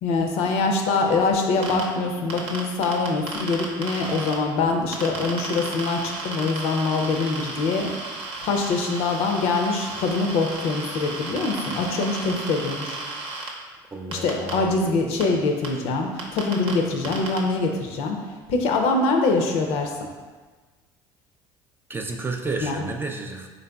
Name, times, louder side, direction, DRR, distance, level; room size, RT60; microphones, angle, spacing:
voice 1, 0.0-13.0 14.1-18.2 18.5-19.9 22.6-22.8, left 3 dB, 70° left, 2 dB, 0.5 m, -24 dB
sound 1, 1.6-1.8 2.3-4.3 4.9-13.5 14.1-14.5 15.2-15.3 15.6-15.7 16.2-16.7 17.0-17.4, right 3 dB, 60° right, 0.8 m, -33 dB
voice 2, 13.9-15.2 21.9-23.5, right 3 dB, 20° right, 3 dB, 0.4 m, -32 dB
3.9 x 3.4 x 2.3 m, 1.4 s
supercardioid pair, 85°, 11 cm